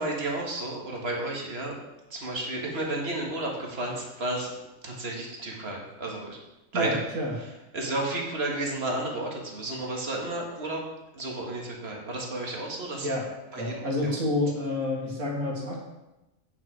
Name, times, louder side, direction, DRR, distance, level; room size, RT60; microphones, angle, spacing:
voice 1, 0.0-1.8 2.1-4.5 4.8-6.4 6.7-7.0 7.7-10.8 11.1-13.1 13.5-14.1, right 2 dB, 50° right, -1 dB, 1.9 m, -32 dB
voice 2, 6.7-7.3 13.0-13.3 13.6-15.8, left 1 dB, 85° right, -3 dB, 2.4 m, -29 dB
9.0 x 6.4 x 4.7 m, 0.96 s
omnidirectional pair, 1.4 m